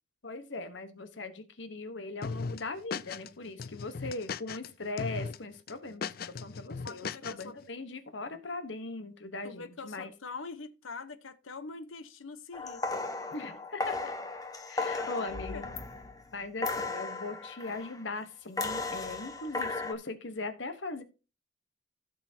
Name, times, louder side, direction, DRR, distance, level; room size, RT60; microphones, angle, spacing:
voice 1, 0.2-10.1 13.3-14.1 14.7-15.6 16.3-21.0, left 3 dB, 65° left, 1.2 m, -40 dB
sound 1, 2.2-3.3 3.6-4.7 5.0-5.4 5.7-7.4, left 5 dB, 50° left, 0.4 m, -37 dB
voice 2, 6.8-7.5 9.4-13.0 15.0-15.8, left 4 dB, 90° left, 1.0 m, -44 dB
sound 2, 12.5-16.2 16.6-18.1 18.6-19.9, left 3 dB, 20° left, 0.9 m, -35 dB
15.5 x 6.1 x 2.8 m
head